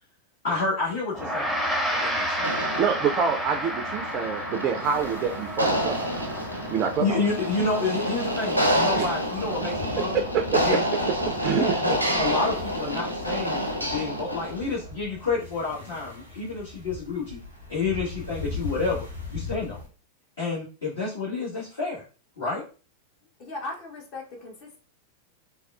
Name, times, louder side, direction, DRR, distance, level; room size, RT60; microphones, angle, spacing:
voice 1, 0.4-1.5 1.9-2.5 6.5-6.7 7.0-10.2 10.6-10.8 11.5-17.4 17.7-19.8 20.4-22.0 22.4-22.6, left 3 dB, 65° left, -10 dB, 1.4 m, -29 dB
Gong, 1.1-10.7, equal, ahead, 0.6 m, -32 dB
sound 1, 2.4-14.7, equal, 90° right, 0.5 m, -28 dB
voice 2, 2.8-6.1 6.7-7.2 8.9-9.1 9.5-10.0 10.5-10.8 11.4-11.7, right 7 dB, 35° right, 5 dB, 0.3 m, -27 dB
sound 2, 4.8-19.9, left 4 dB, 85° left, 0.8 m, -41 dB
voice 3, 23.4-24.8, left 2 dB, 40° left, 0 dB, 0.8 m, -38 dB
3.4 x 2.2 x 2.3 m, 0.36 s
figure-of-eight pair, 90°, 0 cm